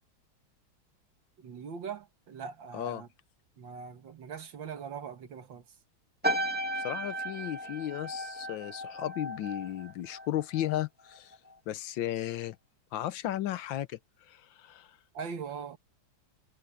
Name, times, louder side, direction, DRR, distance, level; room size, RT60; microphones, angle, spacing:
voice 1, 1.4-3.1 3.6-5.6 15.1-15.8, right 6 dB, 70° right, 2.3 m, -41 dB
sound 1, 6.2-10.9 11.1-11.5, right 1 dB, 5° right, 2.1 m, -35 dB
voice 2, 6.7-11.4 11.7-12.6 12.9-15.0, left 12 dB, 75° left, 1.5 m, -35 dB
omnidirectional pair, 2.2 m